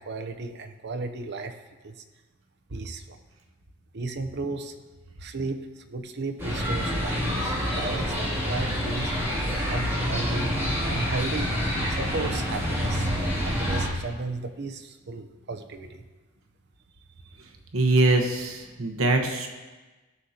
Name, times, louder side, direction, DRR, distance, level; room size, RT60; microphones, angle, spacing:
voice 1, 0.0-1.6 1.8-2.0 2.7-3.2 3.9-4.7 5.2-9.1 9.7-10.5 10.8-11.5 12.0-13.1 13.4-16.0 17.2-17.4, right 3 dB, 55° right, 6 dB, 0.7 m, -34 dB
sound 1, 6.4-13.9, equal, 10° right, 2.7 m, -27 dB
voice 2, 17.7-19.5, right 2 dB, 70° right, 3 dB, 1.2 m, -23 dB
16.5 x 6.5 x 2.9 m, 1.2 s
head